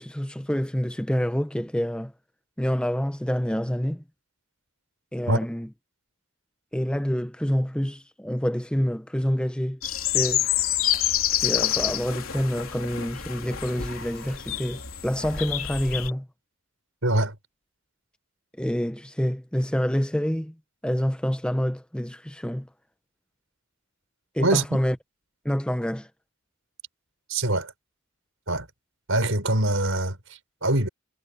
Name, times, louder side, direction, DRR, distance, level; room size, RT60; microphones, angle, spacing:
voice 1, 0.0-2.1 2.6-4.0 5.1-5.7 6.7-9.8 10.1-10.5 11.3-16.3 18.6-20.5 20.8-22.7 24.3-25.0 25.4-26.1, equal, 5° left, 0.7 m, -27 dB
sound 1, 9.8-16.1, left 11 dB, 80° left, 3.5 m, -27 dB
voice 2, 17.0-17.4 24.4-24.6 27.3-27.7 28.5-28.7 29.1-30.9, right 1 dB, 70° right, 5.4 m, -24 dB
head